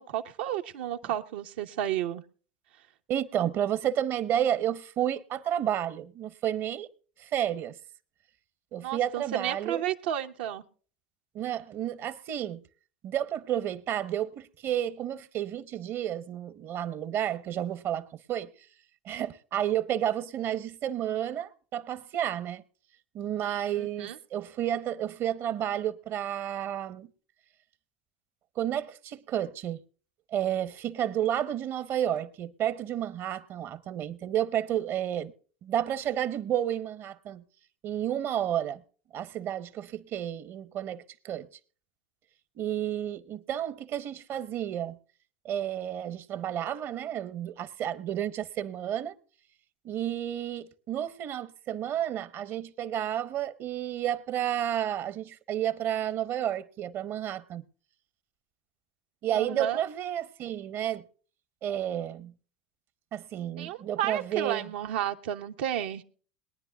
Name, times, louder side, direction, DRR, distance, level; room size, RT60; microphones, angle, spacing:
voice 1, 0.0-2.2 8.8-10.6 23.8-24.2 59.3-59.8 63.6-66.0, right 11 dB, 75° right, 1.1 m, -32 dB
voice 2, 3.1-6.9 7.2-7.7 8.7-9.8 11.3-12.6 13.0-18.5 19.0-22.6 23.1-27.1 28.6-29.8 30.3-35.3 35.6-37.4 37.8-38.8 39.1-41.5 42.6-45.0 45.4-49.1 49.8-57.6 59.2-61.0 61.6-62.3 63.1-64.7, right 10 dB, 45° right, 1.0 m, -31 dB
22.0 x 10.0 x 2.3 m
hypercardioid pair, 90°, 6 cm